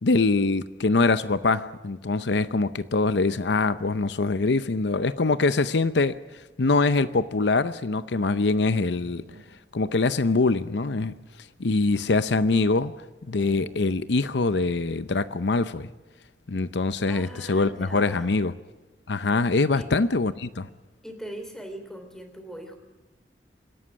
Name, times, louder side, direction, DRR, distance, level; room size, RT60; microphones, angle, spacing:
voice 1, 0.0-6.2 6.6-9.3 9.7-11.1 11.6-12.9 13.3-15.9 16.5-18.5 19.1-20.7, left 3 dB, 75° left, 0.7 m, -23 dB
sound 1, 8.9-9.8 10.4-13.0 13.3-14.4 14.6-14.7 15.0-15.4, right 2 dB, 80° right, 2.4 m, -52 dB
voice 2, 17.1-18.4 19.7-19.9 21.0-22.8, right 1 dB, 5° left, 3.3 m, -40 dB
26.5 x 11.5 x 9.7 m
head